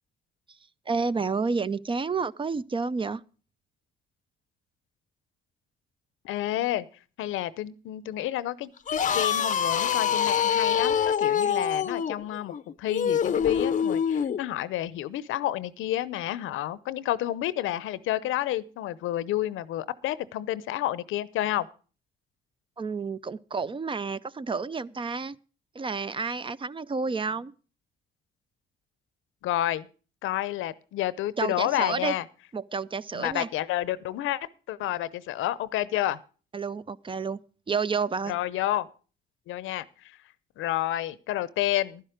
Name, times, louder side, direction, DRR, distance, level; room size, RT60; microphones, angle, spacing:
voice 1, 0.9-3.2 22.8-25.4 25.8-27.5 31.4-32.1 32.5-33.5 36.5-37.4 37.7-38.3, right 4 dB, 25° right, 0.5 m, -30 dB
voice 2, 6.2-6.9 7.2-12.5 12.8-21.7 29.4-29.8 30.2-32.2 33.1-34.4 34.7-36.2 38.3-38.9 39.5-39.8 40.6-42.0, left 13 dB, 85° left, 0.7 m, -30 dB
sound 1, 8.8-14.4, left 8 dB, 40° left, 0.6 m, -25 dB
11.5 x 10.5 x 5.0 m
cardioid pair, 90°, 20 cm